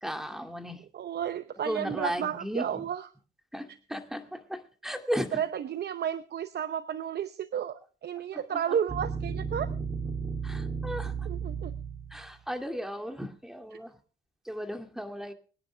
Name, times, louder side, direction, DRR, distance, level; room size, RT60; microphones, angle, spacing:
voice 1, 0.0-0.8 1.6-2.9 3.5-5.4 8.5-8.8 10.4-11.3 12.1-14.0 14.5-15.3, equal, ahead, 5 dB, 2.2 m, -35 dB
voice 2, 0.9-3.1 5.3-9.7 11.3-11.7, right 9 dB, 55° right, 12 dB, 0.8 m, -32 dB
sound 1, 8.9-12.3, right 5 dB, 35° right, 3.4 m, -34 dB
24.0 x 10.0 x 3.4 m, 0.38 s
cardioid pair, 90°, 20 cm